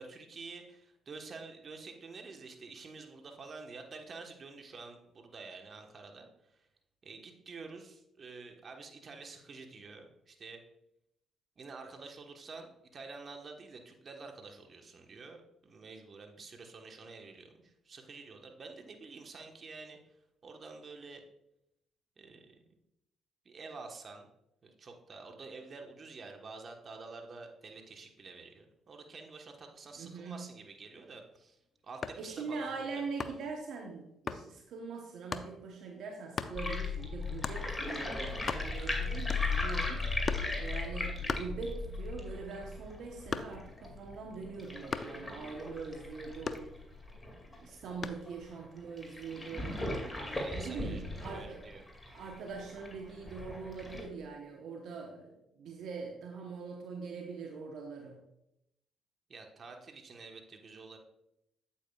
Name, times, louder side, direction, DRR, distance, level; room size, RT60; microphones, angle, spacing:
voice 1, 0.0-6.3 7.0-10.6 11.6-20.0 20.4-21.2 22.2-22.5 23.4-24.3 24.6-31.6 31.8-33.0 40.6-40.8 50.3-51.0 51.3-51.8 59.3-61.0, right 4 dB, 50° right, 3 dB, 1.3 m, -49 dB
voice 2, 30.0-30.4 32.1-46.7 47.5-49.8 50.5-51.6 52.1-58.2, right 4 dB, 70° right, 1 dB, 1.0 m, -42 dB
sound 1, 32.0-32.3 33.2-33.5 34.3-34.5 35.3-35.5 36.4-36.6 37.4-37.7 38.1-38.2 38.4-38.9 39.3-39.7 40.3-40.6 41.3-42.0 42.4-43.8 44.9-45.2 46.5-47.1 48.0-48.3, left 5 dB, 45° left, 0.6 m, -38 dB
sound 2, 36.5-47.5 48.0-48.1 48.3-48.4 49.0-54.0, left 3 dB, 20° left, 2.3 m, -37 dB
8.6 x 8.4 x 2.4 m, 0.82 s
hypercardioid pair, 50°, 0 cm